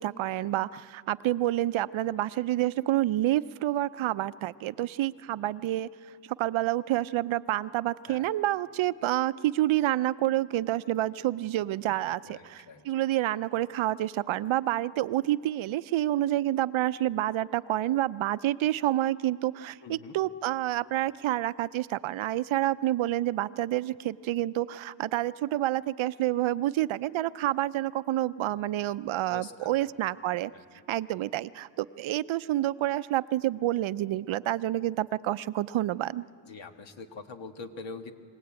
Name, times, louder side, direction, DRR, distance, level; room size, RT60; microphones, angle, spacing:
voice 1, 0.0-5.9 6.4-30.5 30.9-36.3, right 14 dB, 75° right, 16 dB, 0.6 m, -28 dB
voice 2, 12.2-12.8 19.8-20.1 29.3-29.9 30.5-30.6 36.4-38.1, left 4 dB, 65° left, 6 dB, 1.7 m, -44 dB
24.0 x 17.5 x 8.9 m, 2.2 s
cardioid pair, 85°, 48 cm